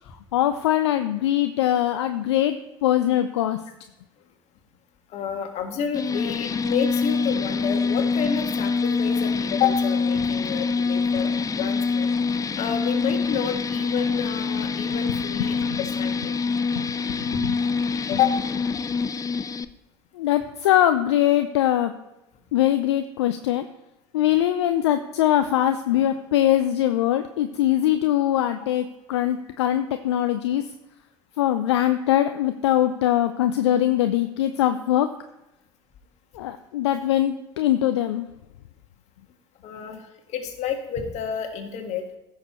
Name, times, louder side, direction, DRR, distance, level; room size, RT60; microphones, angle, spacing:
voice 1, 0.3-3.6 15.1-15.8 16.8-17.2 17.4-17.5 20.1-21.9 22.5-23.7 24.1-30.6 31.4-35.1 36.3-38.2, left 12 dB, 75° left, 9 dB, 0.5 m, -22 dB
voice 2, 5.1-12.1 12.5-16.3 17.3-17.4 18.1-18.4 39.6-40.0 40.3-42.2, left 8 dB, 50° left, 5 dB, 1.6 m, -29 dB
sound 1, 5.9-19.6, left 4 dB, 25° left, 0.5 m, -25 dB
15.5 x 6.5 x 3.1 m, 0.93 s
figure-of-eight pair, 65°, 14 cm